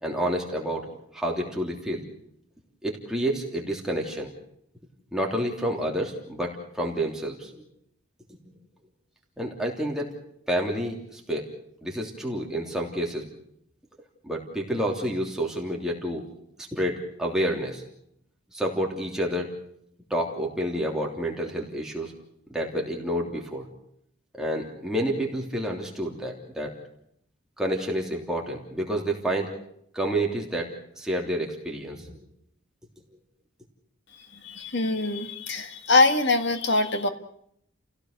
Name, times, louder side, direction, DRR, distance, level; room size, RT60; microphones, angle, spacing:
voice 1, 0.0-2.0 2.8-4.3 5.1-7.6 9.4-10.1 10.5-11.5 11.8-13.3 14.2-16.2 16.6-17.8 18.5-19.5 20.1-22.1 22.5-23.7 24.4-26.7 27.6-29.5 29.9-32.1, right 1 dB, 5° right, -1 dB, 3.2 m, -29 dB
voice 2, 34.4-37.1, left 3 dB, 55° left, 8 dB, 1.7 m, -23 dB
30.0 x 17.0 x 6.7 m, 0.72 s
head